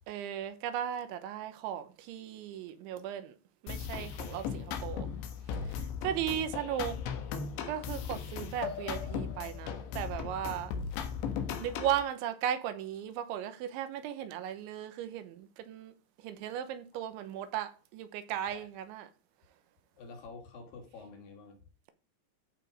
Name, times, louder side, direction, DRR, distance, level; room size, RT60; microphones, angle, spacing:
voice 1, 0.1-3.4 3.6-5.1 6.0-7.0 7.7-10.7 11.6-15.9 16.2-19.1, right 10 dB, 85° right, 3.5 m, -36 dB
sound 1, 3.7-12.0, left 7 dB, 80° left, 3.5 m, -37 dB
voice 2, 6.3-6.6 16.9-17.0 18.5-18.7 20.0-21.6, left 4 dB, 60° left, 3.4 m, -49 dB
14.0 x 5.1 x 4.9 m
omnidirectional pair, 5.2 m